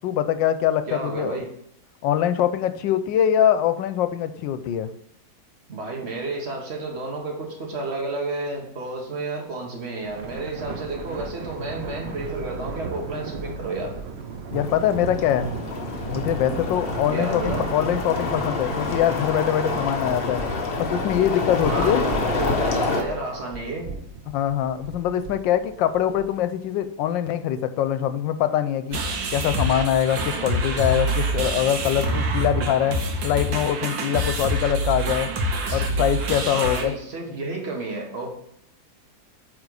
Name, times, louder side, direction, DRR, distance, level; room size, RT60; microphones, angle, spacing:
voice 1, 0.0-1.4 2.0-4.9 14.5-15.5 16.1-20.4 20.8-22.0 24.3-29.0 29.3-35.3 35.7-36.9, left 10 dB, 90° left, 11 dB, 1.3 m, -23 dB
voice 2, 0.9-1.4 5.7-13.9 17.1-17.7 21.7-23.9 36.5-38.3, right 2 dB, 35° right, 0 dB, 1.6 m, -31 dB
Thunder, 10.0-26.6, right 4 dB, 55° right, 0.7 m, -36 dB
sound 1, 14.5-23.0, left 3 dB, 40° left, 0.9 m, -28 dB
sound 2, 28.9-36.8, right 1 dB, 85° right, 1.8 m, -26 dB
8.7 x 4.0 x 4.8 m, 0.73 s
omnidirectional pair, 2.0 m